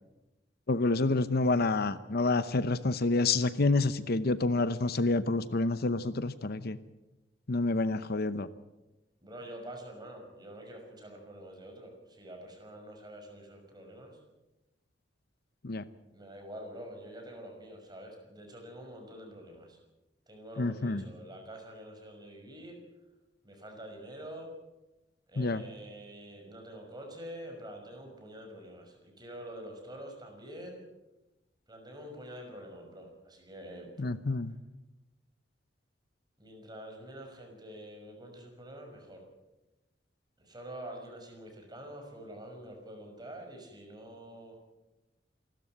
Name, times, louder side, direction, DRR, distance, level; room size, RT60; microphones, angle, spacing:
voice 1, 0.7-6.8 7.5-8.5 15.6-15.8 20.6-21.0 25.4-25.6 34.0-34.5, left 3 dB, 60° left, 14 dB, 0.8 m, -28 dB
voice 2, 9.2-14.2 16.1-19.8 20.3-22.8 23.4-24.5 25.3-30.8 31.7-33.9 36.4-39.2 40.4-44.6, right 1 dB, 25° right, 3 dB, 6.0 m, -46 dB
28.0 x 13.0 x 7.9 m, 1.0 s
head